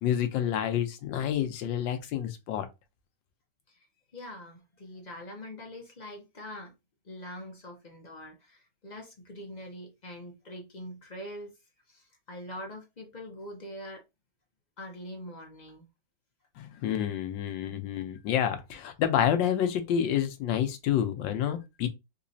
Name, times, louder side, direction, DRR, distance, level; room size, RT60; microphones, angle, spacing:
voice 1, 0.0-2.7 16.6-21.9, left 9 dB, 80° left, 1.4 m, -28 dB
voice 2, 4.1-6.7 7.0-11.5 11.9-14.0 14.8-15.9, left 1 dB, 55° left, 0.4 m, -43 dB
3.8 x 2.9 x 2.7 m
omnidirectional pair, 2.0 m